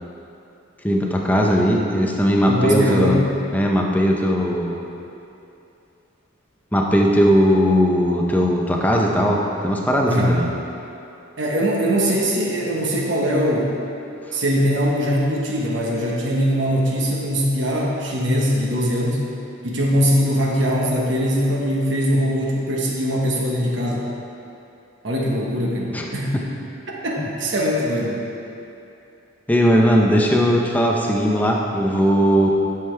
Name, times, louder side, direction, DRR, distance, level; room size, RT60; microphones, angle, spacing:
voice 1, 0.8-3.2 3.5-4.8 6.7-10.5 25.9-26.0 27.2-27.3 29.5-32.5, equal, 10° left, -1 dB, 0.7 m, -18 dB
voice 2, 2.5-3.2 10.1-10.4 11.4-13.7 14.3-19.3 19.6-24.1 25.0-26.3 26.9-28.2, equal, 65° right, -3 dB, 1.3 m, -21 dB
11.0 x 6.0 x 3.4 m, 2.8 s
head